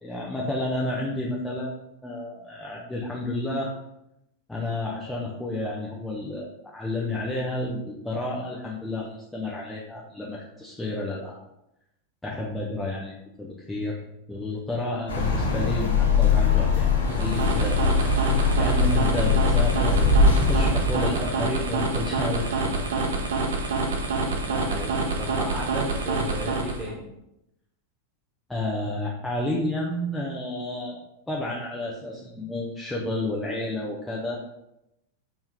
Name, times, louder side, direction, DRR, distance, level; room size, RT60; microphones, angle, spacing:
voice 1, 0.0-3.7 4.5-11.4 12.2-14.0 14.3-23.1 28.5-31.0 31.3-34.4, left 1 dB, 5° left, -4 dB, 0.6 m, -31 dB
sound 1, 15.1-21.3, left 4 dB, 65° left, 0.8 m, -22 dB
sound 2, 17.0-26.9, right 3 dB, 65° right, 0.7 m, -27 dB
voice 2, 24.2-27.0, right 1 dB, 10° right, -4 dB, 1.6 m, -35 dB
4.3 x 2.9 x 3.7 m, 0.86 s
figure-of-eight pair, 90°, 0 cm